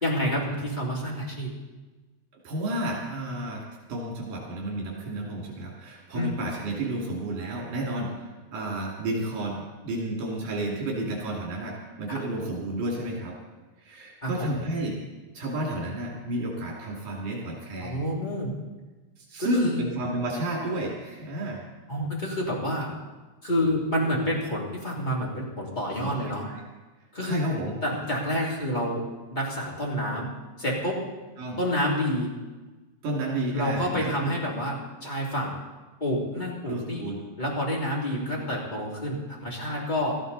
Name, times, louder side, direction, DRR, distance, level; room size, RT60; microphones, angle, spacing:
voice 1, 0.0-1.5 6.1-6.3 14.2-14.5 17.8-18.5 19.4-19.8 21.9-22.9 23.4-26.4 27.1-27.4 27.8-29.0 29.3-30.3 30.6-31.0 31.6-32.3 33.5-34.7 35.0-35.6 36.0-37.0 37.4-40.2, equal, 15° left, -3 dB, 2.7 m, -28 dB
voice 2, 2.4-13.3 13.8-15.0 15.3-18.0 19.2-21.6 25.9-26.6 27.2-28.1 31.4-31.6 33.0-34.6 36.7-37.2, right 1 dB, 80° right, -3 dB, 4.2 m, -31 dB
17.5 x 13.5 x 4.1 m, 1.2 s
omnidirectional pair, 3.6 m